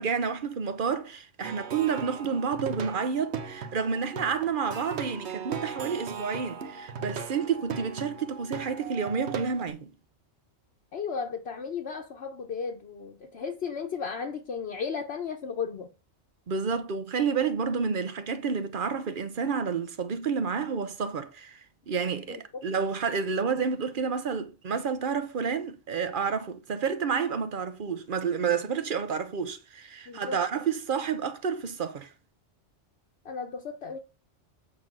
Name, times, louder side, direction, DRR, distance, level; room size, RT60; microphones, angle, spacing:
voice 1, 0.0-9.9 16.5-32.1, right 6 dB, 50° right, 0.9 m, -30 dB
Plucked string instrument, 1.4-9.7, right 6 dB, 70° right, 1.1 m, -38 dB
voice 2, 10.9-15.9 22.3-22.4 30.1-30.4 33.2-34.0, left 6 dB, 65° left, 1.1 m, -34 dB
7.8 x 3.9 x 6.0 m
omnidirectional pair, 1.2 m